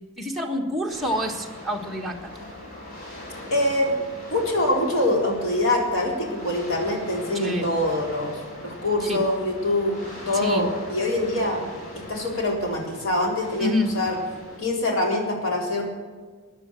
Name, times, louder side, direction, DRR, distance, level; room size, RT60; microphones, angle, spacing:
voice 1, 0.0-2.4 7.3-7.7 9.0-9.2 10.4-10.6 13.6-14.0, left 1 dB, ahead, -1 dB, 1.5 m, -27 dB
sound 1, 0.9-14.6, left 1 dB, 40° left, 5.5 m, -41 dB
voice 2, 3.5-3.9 4.3-11.6 12.0-14.2 14.6-15.8, left 1 dB, 75° left, -1 dB, 4.1 m, -24 dB
15.0 x 9.7 x 7.5 m, 1.5 s
head